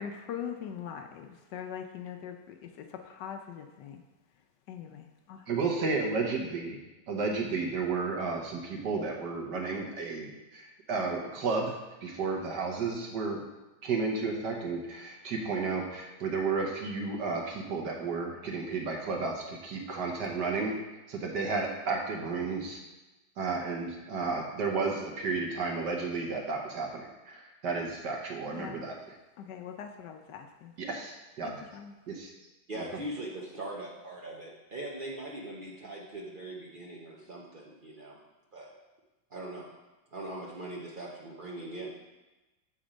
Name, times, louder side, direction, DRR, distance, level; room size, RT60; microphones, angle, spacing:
voice 1, 0.0-4.0 4.7-5.4 28.5-28.8 29.4-30.7 31.4-31.9, left 8 dB, 75° left, 4 dB, 1.1 m, -42 dB
voice 2, 5.5-6.8 7.1-11.7 12.0-13.4 13.8-20.7 21.1-22.8 23.4-27.0 27.3-28.9 30.8-31.6 32.1-32.3 32.8-33.0, right 4 dB, 65° right, 0 dB, 1.5 m, -32 dB
voice 3, 32.7-38.2 38.5-38.7 39.3-39.7 40.1-41.9, right 1 dB, 85° right, -3 dB, 0.4 m, -41 dB
7.3 x 4.3 x 5.0 m, 1.1 s
omnidirectional pair, 2.1 m